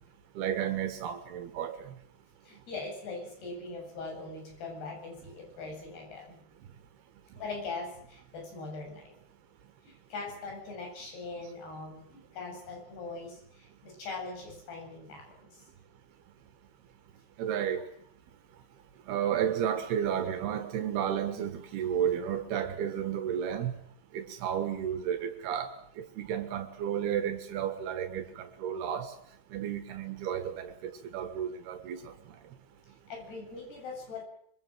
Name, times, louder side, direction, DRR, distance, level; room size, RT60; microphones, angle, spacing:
voice 1, 0.4-1.9 17.4-17.9 19.1-23.8 24.1-29.1 29.5-32.1, right 9 dB, 80° right, 3.5 m, -32 dB
voice 2, 2.4-6.4 7.4-9.0 9.9-15.6 33.1-34.3, left 3 dB, 80° left, 9.8 m, -41 dB
26.0 x 24.0 x 7.6 m
omnidirectional pair, 4.6 m